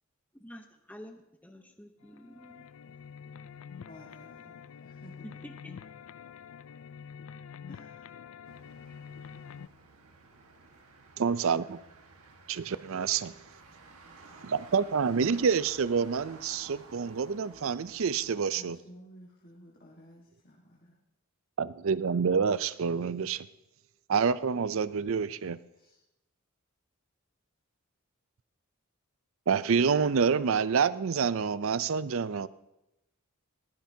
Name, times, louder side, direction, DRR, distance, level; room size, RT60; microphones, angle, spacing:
voice 1, 0.3-2.7 5.2-5.8 8.9-9.0, equal, 5° left, 4 dB, 0.7 m, -49 dB
sound 1, 2.0-9.7, left 7 dB, 65° left, 0.4 m, -47 dB
voice 2, 3.9-5.4 7.7-8.1 18.5-21.0 25.7-26.0, equal, 45° left, -3 dB, 1.5 m, -53 dB
Motor vehicle (road), 8.4-18.6, right 3 dB, 80° right, 1.6 m, -53 dB
voice 3, 11.2-11.8 12.5-13.3 14.4-18.8 21.6-23.5 24.1-25.6 29.5-32.5, right 6 dB, 65° right, 16 dB, 0.4 m, -27 dB
20.0 x 14.5 x 2.8 m, 0.91 s
head